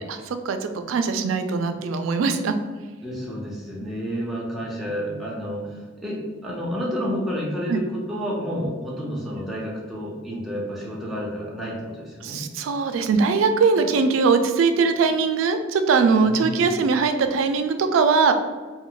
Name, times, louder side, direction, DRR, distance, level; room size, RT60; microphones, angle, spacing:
voice 1, 0.0-2.6 7.7-7.8 12.2-18.3, right 4 dB, 90° right, 8 dB, 0.3 m, -21 dB
voice 2, 3.0-12.4 16.2-16.7, equal, ahead, -5 dB, 0.5 m, -30 dB
2.3 x 2.1 x 3.8 m, 1.4 s
head